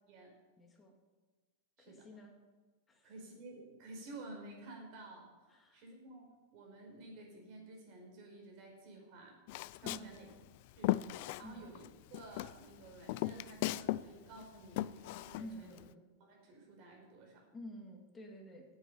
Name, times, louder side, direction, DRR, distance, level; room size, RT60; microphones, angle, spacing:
voice 1, 0.6-0.9 1.8-2.3 2.9-3.1 5.5-5.8 9.8-10.2 11.4-11.7 15.4-15.9 17.5-18.6, equal, 10° left, 1 dB, 2.4 m, -50 dB
voice 2, 3.0-6.3 6.5-9.4 9.7-10.3 10.8-11.0 11.4-11.8 12.1-15.7 16.2-17.5, right 2 dB, 45° right, 0 dB, 5.2 m, -52 dB
Walk footsteps, 9.5-11.9 12.1-14.1 14.3-15.9, left 17 dB, 50° left, 0.4 m, -37 dB
17.5 x 8.7 x 5.7 m, 1.3 s
supercardioid pair, 160°, 0 cm